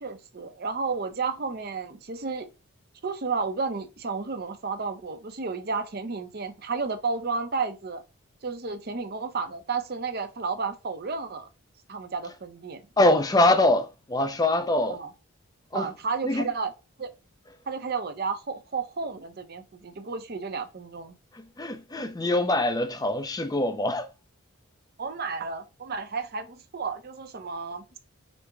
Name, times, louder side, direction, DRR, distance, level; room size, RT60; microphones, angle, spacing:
voice 1, 0.0-2.5 3.0-8.0 8.4-11.5 11.9-12.8 14.9-15.1 15.7-16.7 17.0-17.1 17.7-21.1 25.0-27.8, right 4 dB, 45° right, 0.6 m, -32 dB
voice 2, 13.0-15.0 15.7-15.9 16.2-16.5 21.6-24.1, left 1 dB, 15° left, 0.4 m, -23 dB
5.2 x 2.1 x 4.5 m
head